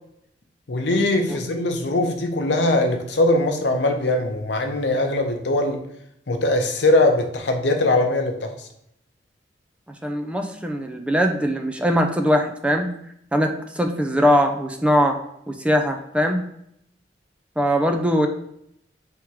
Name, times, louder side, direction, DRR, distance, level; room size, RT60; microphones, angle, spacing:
voice 1, 0.7-5.8 6.3-8.5, left 2 dB, 75° left, 5 dB, 0.7 m, -21 dB
voice 2, 10.0-12.9 13.3-15.2 15.5-16.4 17.6-18.3, equal, 5° right, 4 dB, 0.4 m, -21 dB
3.5 x 2.9 x 4.6 m, 0.74 s
head